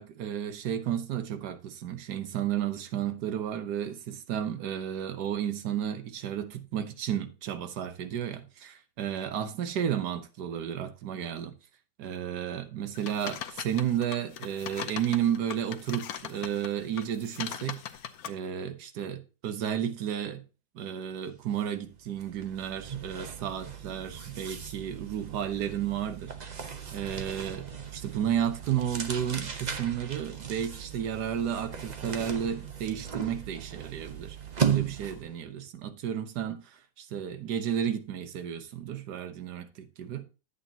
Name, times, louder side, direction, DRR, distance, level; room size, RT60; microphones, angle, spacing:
voice 1, 0.0-11.5 12.0-17.8 18.2-20.4 20.7-26.6 26.9-40.2, right 9 dB, 70° right, 1.4 m, -32 dB
sound 1, 12.9-16.7 16.9-18.3, left 9 dB, 65° left, 1.1 m, -40 dB
sound 2, 21.4-21.6 21.9-35.4, right 7 dB, 40° right, 0.6 m, -36 dB
11.5 x 8.1 x 2.8 m
omnidirectional pair, 1.9 m